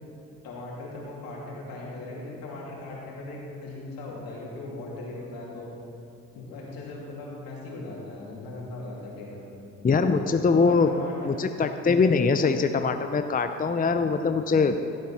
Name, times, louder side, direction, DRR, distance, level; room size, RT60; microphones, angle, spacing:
voice 1, 0.4-5.7 6.3-9.4 10.0-10.2 10.5-11.4, left 2 dB, 75° left, -4 dB, 3.1 m, -38 dB
voice 2, 9.8-10.9 11.2-14.9, left 4 dB, 25° left, 7 dB, 0.7 m, -22 dB
16.0 x 8.2 x 4.4 m, 2.7 s
supercardioid pair, 60°, 35 cm